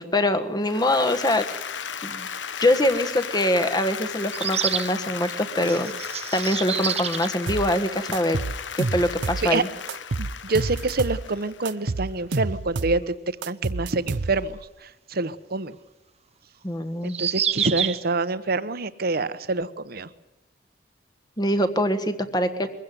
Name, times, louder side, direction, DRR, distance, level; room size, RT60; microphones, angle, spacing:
voice 1, 0.0-1.4 1.7-2.3 2.6-5.9 6.3-8.4 8.7-9.7 16.6-17.2 21.4-22.7, left 1 dB, 25° left, 10 dB, 1.5 m, -24 dB
Applause, 0.6-12.0, left 7 dB, 80° left, 1.0 m, -35 dB
sound 1, 2.8-2.9 4.3-4.9 5.6-7.3 8.6-8.7 8.8-8.9 11.3-11.4 14.6-14.7 17.0-18.0, right 9 dB, 35° right, 0.8 m, -27 dB
sound 2, 7.5-7.7 8.1-9.5 9.9-11.2 11.7-13.0 13.4-14.6, right 3 dB, 80° right, 0.8 m, -29 dB
voice 2, 10.2-13.1 13.5-14.6 15.1-15.7 17.0-20.1, right 3 dB, 55° right, 13 dB, 1.1 m, -26 dB
22.5 x 16.0 x 9.5 m, 0.98 s
head